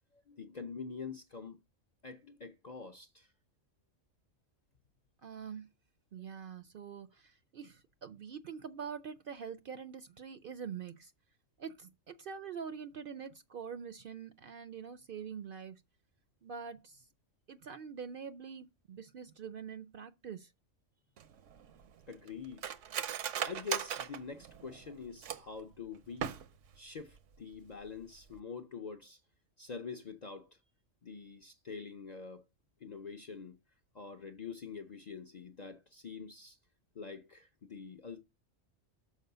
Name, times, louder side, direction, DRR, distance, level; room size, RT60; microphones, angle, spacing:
voice 1, 0.1-1.6 2.0-3.3 22.1-22.8 23.5-26.3 26.8-29.2 29.6-30.6 31.0-32.4 32.8-33.6 33.9-36.6 36.9-38.2, left 5 dB, 50° left, 0.5 m, -45 dB
voice 2, 5.2-5.7 6.1-11.1 11.6-15.8 16.4-17.1 17.5-20.5, right 7 dB, 60° right, 0.6 m, -45 dB
Cutlery silverware, 21.2-25.6 26.1-26.8 27.1-27.2 27.5-27.9 28.2-28.4, right 9 dB, 75° right, 1.0 m, -39 dB
6.6 x 4.6 x 6.6 m
omnidirectional pair, 1.3 m